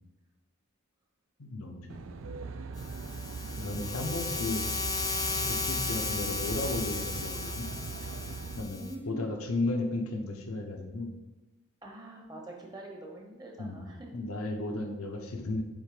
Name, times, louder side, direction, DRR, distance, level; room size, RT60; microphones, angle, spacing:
voice 1, 1.4-2.4 3.6-4.7 5.3-7.7 8.6-11.1 13.6-15.6, left 2 dB, 90° left, 3 dB, 0.9 m, -34 dB
Aircraft, 1.9-8.6, right 4 dB, 65° right, 0.4 m, -39 dB
sound 1, 2.8-8.9, left 4 dB, 15° left, 0.4 m, -35 dB
voice 2, 8.8-9.3 11.8-14.1, right 1 dB, 20° right, 0 dB, 0.9 m, -45 dB
7.1 x 3.3 x 4.9 m, 1.1 s
head